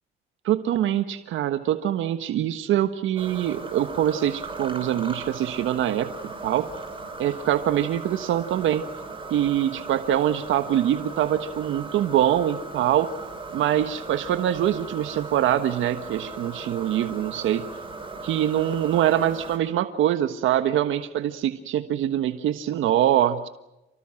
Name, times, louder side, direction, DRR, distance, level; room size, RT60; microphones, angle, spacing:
voice 1, 0.4-6.1 6.4-6.7 7.2-8.8 9.3-13.1 13.5-17.6 18.2-23.5, right 11 dB, 80° right, 10 dB, 1.4 m, -24 dB
sound 1, 3.2-19.6, right 3 dB, 25° right, 5.7 m, -38 dB
29.5 x 19.0 x 7.7 m, 0.92 s
cardioid pair, 90°, 20 cm